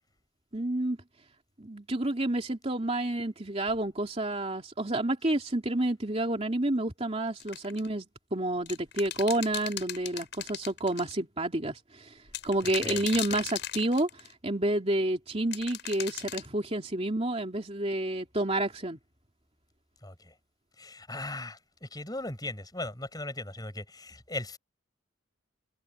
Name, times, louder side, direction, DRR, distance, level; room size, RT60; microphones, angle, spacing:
voice 1, 0.5-1.0 1.6-12.1 12.4-19.0, right 1 dB, 30° right, 3.0 m, -29 dB
sound 1, 7.4-7.9 8.7-11.1 12.3-14.3 15.5-16.5, left 11 dB, 60° left, 7.6 m, -37 dB
voice 2, 20.8-24.6, left 2 dB, 20° left, 6.5 m, -38 dB
head